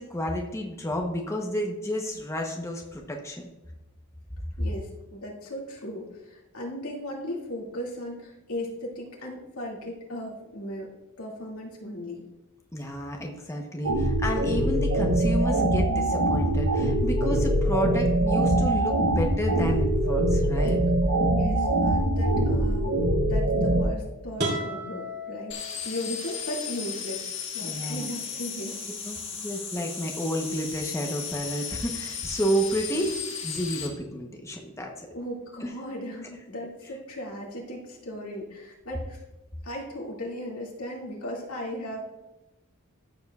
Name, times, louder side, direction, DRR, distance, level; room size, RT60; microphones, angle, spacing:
voice 1, 0.0-3.4 12.7-20.8 27.6-28.1 29.0-33.2 33.4-35.1 35.6-35.7, equal, 15° left, 1 dB, 0.8 m, -31 dB
voice 2, 4.6-10.9 11.2-12.2 21.3-23.0 23.2-27.3 27.5-28.8 35.1-39.2 39.6-42.0, left 1 dB, 85° left, -2 dB, 2.2 m, -36 dB
sound 1, 13.8-23.8, right 1 dB, 85° right, 1.1 m, -23 dB
sound 2, 24.4-26.3, right 1 dB, 50° right, 2.5 m, -33 dB
sound 3, 25.5-33.9, left 7 dB, 60° left, 1.6 m, -35 dB
14.0 x 7.0 x 2.3 m, 1.0 s
head